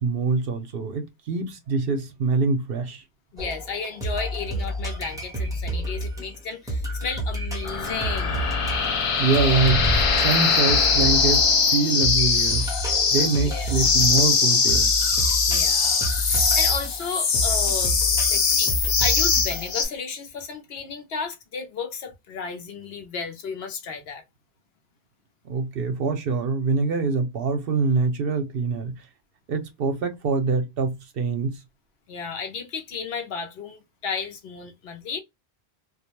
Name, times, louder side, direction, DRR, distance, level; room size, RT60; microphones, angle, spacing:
voice 1, 0.0-3.0 9.2-9.9 10.2-12.7 13.1-14.9 25.4-29.0 29.5-31.6, right 4 dB, 65° right, 0.8 m, -24 dB
voice 2, 3.3-8.4 13.4-13.7 15.5-18.0 18.2-24.2 32.1-35.2, left 5 dB, 70° left, 0.9 m, -33 dB
sound 1, 3.4-19.9, equal, 5° right, 0.7 m, -30 dB
sound 2, 7.6-19.9, left 5 dB, 55° left, 0.3 m, -22 dB
2.3 x 2.1 x 2.9 m
omnidirectional pair, 1.1 m